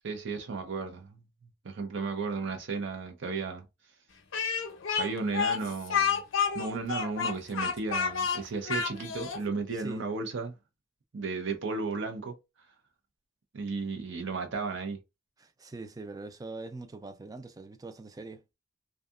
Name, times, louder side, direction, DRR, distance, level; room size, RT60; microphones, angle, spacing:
voice 1, 0.0-1.2 1.6-3.6 5.0-6.2 6.5-10.5 11.1-12.4 13.5-15.0, right 4 dB, 70° right, 0.6 m, -34 dB
Speech, 4.3-9.4, left 6 dB, 85° left, 0.6 m, -30 dB
voice 2, 15.4-18.4, right 3 dB, 20° right, 0.3 m, -43 dB
2.7 x 2.4 x 2.3 m
head